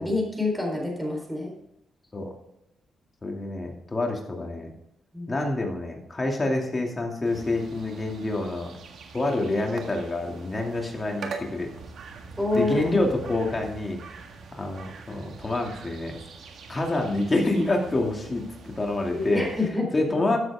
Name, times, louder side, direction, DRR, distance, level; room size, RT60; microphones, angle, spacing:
voice 1, 0.0-1.5 5.1-5.3 12.4-13.1 19.1-19.9, left 2 dB, 5° right, 0 dB, 4.0 m, -27 dB
voice 2, 3.2-4.7 5.3-8.8 9.1-11.7 12.5-14.0 14.5-16.2 16.7-19.5 19.9-20.4, left 2 dB, 25° left, 1 dB, 2.5 m, -27 dB
sound 1, 7.2-19.7, right 4 dB, 70° right, 1.7 m, -43 dB
14.0 x 7.9 x 3.7 m, 0.83 s
cardioid pair, 100°, 0 cm